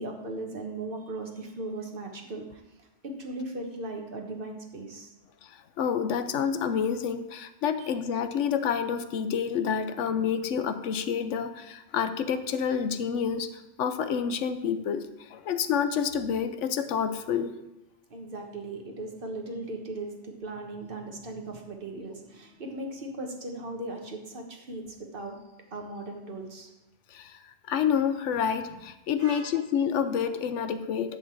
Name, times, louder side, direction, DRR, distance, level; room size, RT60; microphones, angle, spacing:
voice 1, 0.0-5.1 7.8-7.9 18.1-25.4 25.7-26.7 29.2-29.5, right 2 dB, 50° right, 2 dB, 1.5 m, -38 dB
voice 2, 5.4-17.5 27.1-31.2, left 7 dB, 85° left, 10 dB, 1.0 m, -28 dB
11.0 x 3.9 x 7.6 m, 0.97 s
omnidirectional pair, 1.2 m